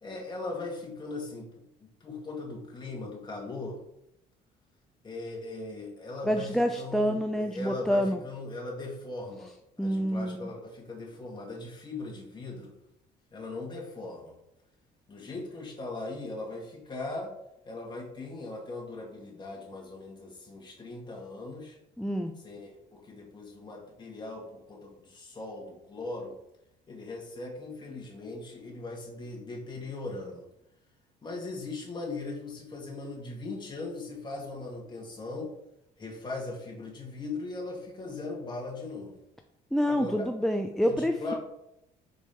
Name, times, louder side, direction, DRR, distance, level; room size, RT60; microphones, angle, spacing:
voice 1, 0.0-3.8 5.0-9.5 9.8-12.7 13.3-14.3 15.1-17.3 17.6-21.8 22.4-26.4 26.9-30.5 31.2-35.5 36.0-39.2 39.9-40.3 40.9-41.4, left 2 dB, 25° left, -2 dB, 2.1 m, -39 dB
voice 2, 6.2-8.2 9.8-10.5 22.0-22.3 39.7-41.3, equal, ahead, 5 dB, 0.4 m, -27 dB
5.4 x 4.5 x 4.4 m, 0.80 s
cardioid pair, 110°, 17 cm